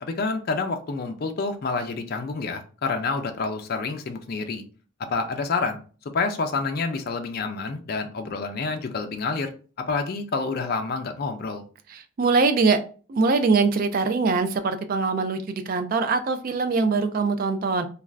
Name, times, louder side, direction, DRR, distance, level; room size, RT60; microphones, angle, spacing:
voice 1, 0.0-4.6 5.1-5.8 6.1-9.5 9.9-11.6, left 4 dB, 45° left, 6 dB, 0.4 m, -28 dB
voice 2, 11.9-12.8 13.1-17.9, right 4 dB, 45° right, 9 dB, 0.3 m, -22 dB
2.4 x 2.3 x 3.2 m, 0.38 s
head